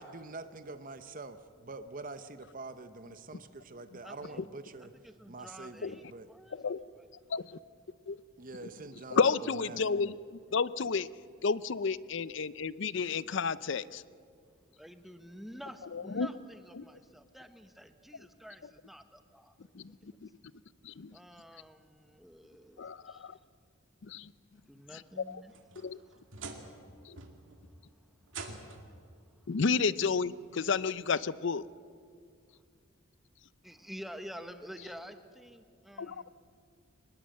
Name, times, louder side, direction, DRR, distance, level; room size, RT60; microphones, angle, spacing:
voice 1, 0.0-4.9 5.3-6.3 8.4-10.1, right 3 dB, 40° right, 10 dB, 0.8 m, -46 dB
voice 2, 4.0-4.4 4.8-7.1 14.8-19.6 20.2-20.3 21.1-23.3 24.5-25.5 26.0-26.2 33.6-36.3, equal, ahead, 8 dB, 1.0 m, -49 dB
voice 3, 9.1-10.2 10.5-11.1 11.4-14.0 15.9-16.3 16.8-16.9 19.7-20.3 20.8-21.2 22.8-23.4 24.0-24.3 25.3-25.4 25.8-26.0 27.1-27.2 29.5-31.6 36.0-36.2, left 5 dB, 60° left, 18 dB, 0.5 m, -31 dB
sound 1, 25.3-26.9 27.2-27.6 28.3-29.0 30.1-30.2 30.9-31.0 32.6-32.7, right 4 dB, 70° right, 2.3 m, -46 dB
23.5 x 20.5 x 7.7 m, 2.2 s
head